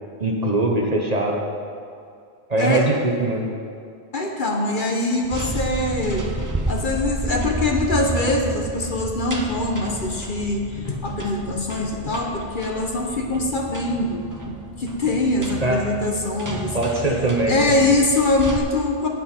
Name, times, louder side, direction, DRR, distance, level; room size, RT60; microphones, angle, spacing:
voice 1, 0.2-1.4 2.5-3.5 15.6-15.8 16.7-17.8, right 2 dB, 35° right, 0 dB, 1.0 m, -21 dB
voice 2, 2.6-2.9 4.1-6.3 6.7-16.8 17.5-19.1, left 2 dB, 45° left, 2 dB, 1.0 m, -23 dB
sound 1, 5.2-18.6, right 2 dB, 20° right, 0.6 m, -31 dB
17.5 x 6.1 x 4.4 m, 2.3 s
omnidirectional pair, 1.2 m